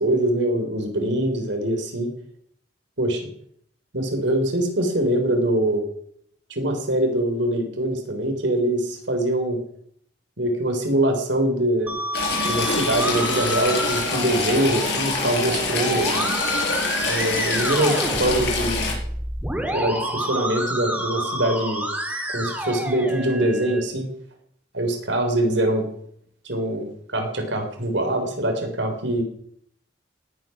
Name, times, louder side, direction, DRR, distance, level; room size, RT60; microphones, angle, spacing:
voice 1, 0.0-2.1 3.0-3.3 3.9-5.8 6.5-9.6 10.4-12.0 12.5-16.1 17.1-19.0 19.7-21.9 22.3-24.1 24.7-25.9 26.4-29.2, right 1 dB, 85° right, 5 dB, 3.8 m, -23 dB
Musical instrument, 11.9-23.8, right 1 dB, 10° right, 2.6 m, -29 dB
Stream / Trickle dribble, 12.1-18.9, left 3 dB, 65° left, 5.9 m, -26 dB
18.5 x 9.1 x 5.9 m, 0.67 s
head